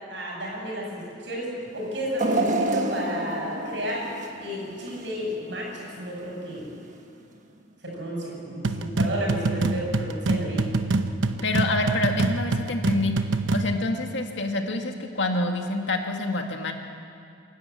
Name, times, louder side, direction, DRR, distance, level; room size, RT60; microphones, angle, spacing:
voice 1, 0.1-4.1 4.4-6.7 7.8-10.7, equal, 65° right, -2 dB, 7.0 m, -32 dB
sound 1, 2.2-5.3 5.8-5.9 6.9-7.0, right 2 dB, 40° right, 1.5 m, -28 dB
sound 2, 8.6-13.8, right 2 dB, 80° right, 0.9 m, -25 dB
voice 2, 11.4-13.1 13.5-16.7, left 2 dB, 70° left, 4 dB, 1.9 m, -27 dB
27.5 x 11.5 x 8.5 m, 2.4 s
head